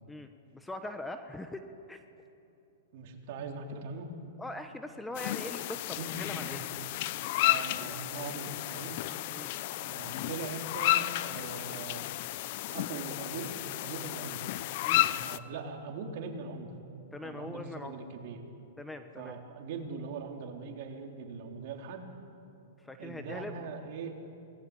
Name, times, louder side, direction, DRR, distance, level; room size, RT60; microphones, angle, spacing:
voice 1, 0.5-1.6 1.9-2.0 4.4-6.6 9.3-9.5 14.8-15.1 17.1-17.9 18.8-19.4 22.8-23.5, left 1 dB, 5° left, 7 dB, 1.2 m, -41 dB
voice 2, 2.9-4.1 6.0-6.9 7.4-9.0 9.8-12.1 12.7-13.6 13.8-14.5 15.1-16.7 17.2-18.4 19.2-22.1 23.0-24.1, right 4 dB, 55° right, 2 dB, 3.8 m, -41 dB
sound 1, 5.1-15.4, left 16 dB, 50° left, 0.7 m, -32 dB
27.5 x 20.0 x 8.7 m, 2.8 s
hypercardioid pair, 140°, 0 cm